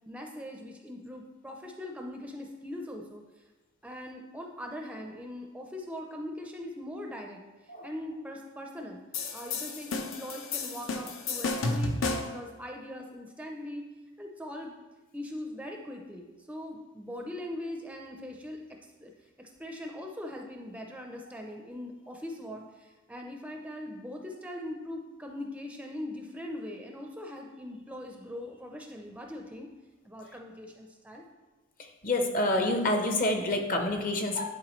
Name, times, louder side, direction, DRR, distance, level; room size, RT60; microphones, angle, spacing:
voice 1, 0.1-3.2 3.8-9.0 9.3-13.8 14.2-14.8 15.1-18.6 19.0-19.1 19.4-29.7 30.0-31.2, left 1 dB, 5° right, 2 dB, 0.5 m, -41 dB
sound 1, 9.1-12.4, left 3 dB, 70° left, 0.7 m, -32 dB
voice 2, 32.0-34.4, left 1 dB, 45° left, 4 dB, 0.8 m, -27 dB
10.5 x 4.5 x 3.1 m, 1.2 s
head